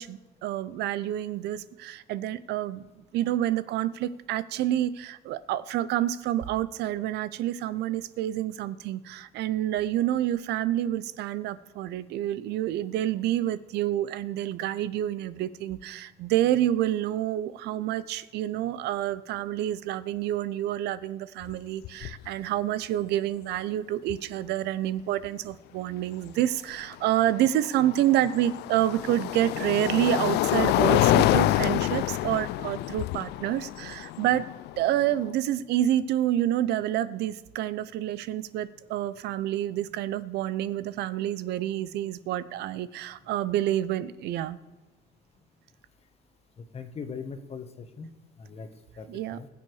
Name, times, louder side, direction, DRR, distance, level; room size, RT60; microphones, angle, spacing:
voice 1, 0.0-2.8 3.1-34.5 34.8-44.6 49.1-49.4, right 12 dB, 80° right, 16 dB, 0.6 m, -28 dB
sound 1, 21.4-21.5 21.8-22.3 24.1-24.2 27.2-35.3, left 16 dB, 80° left, 0.4 m, -26 dB
voice 2, 46.6-48.1 48.4-48.7 49.0-49.5, left 5 dB, 35° left, 8 dB, 1.5 m, -40 dB
21.0 x 7.0 x 4.8 m, 1.2 s
cardioid pair, 110°, 17 cm